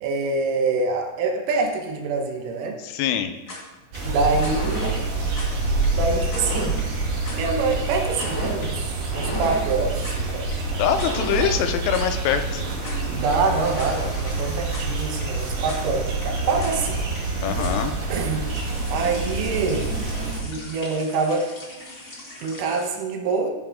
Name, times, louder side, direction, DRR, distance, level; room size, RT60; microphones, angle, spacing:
voice 1, 0.0-2.8 4.0-5.0 5.9-6.8 7.3-10.8 13.1-17.0 18.1-18.4 18.9-20.0 20.4-21.5 22.4-23.5, right 4 dB, 80° right, 3 dB, 3.8 m, -25 dB
voice 2, 2.8-3.3 10.8-12.6 17.4-18.0, left 9 dB, 85° left, 8 dB, 3.3 m, -24 dB
sound 1, 3.3-22.9, left 1 dB, 50° left, 1.2 m, -37 dB
sound 2, 3.9-20.4, right 3 dB, 55° right, 3.7 m, -27 dB
15.5 x 5.6 x 3.7 m, 1.1 s
omnidirectional pair, 5.7 m